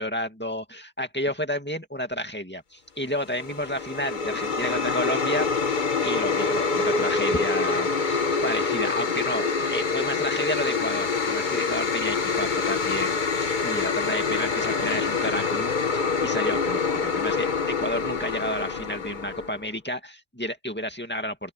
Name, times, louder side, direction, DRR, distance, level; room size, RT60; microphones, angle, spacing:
voice 1, 0.0-21.5, equal, 10° left, 2.1 m, -31 dB
sound 1, 3.2-19.6, left 4 dB, 50° left, 1.2 m, -26 dB
open air
omnidirectional pair, 1.1 m